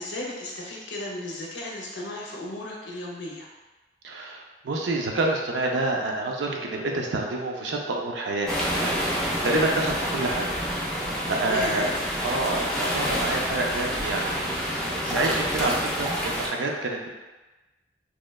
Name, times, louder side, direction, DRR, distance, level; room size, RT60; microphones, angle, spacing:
voice 1, 0.0-3.5 11.5-11.9, left 1 dB, 80° left, -2 dB, 0.6 m, -35 dB
voice 2, 4.0-10.5 10.9-11.9 12.2-17.1, right 2 dB, 85° right, 1 dB, 0.4 m, -28 dB
sound 1, 8.5-16.5, equal, 5° left, 0.3 m, -28 dB
3.0 x 2.2 x 2.2 m, 1.2 s
head